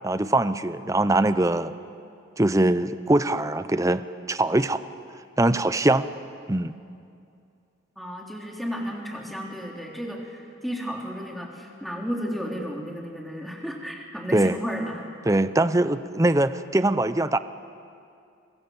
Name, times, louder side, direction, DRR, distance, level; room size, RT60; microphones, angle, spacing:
voice 1, 0.0-1.7 2.4-4.8 5.4-6.1 6.5-6.7 14.3-14.6 15.3-17.4, right 2 dB, 15° right, 12 dB, 0.6 m, -22 dB
voice 2, 8.0-15.1, equal, ahead, -1 dB, 3.3 m, -33 dB
30.0 x 24.0 x 7.1 m, 2.4 s
head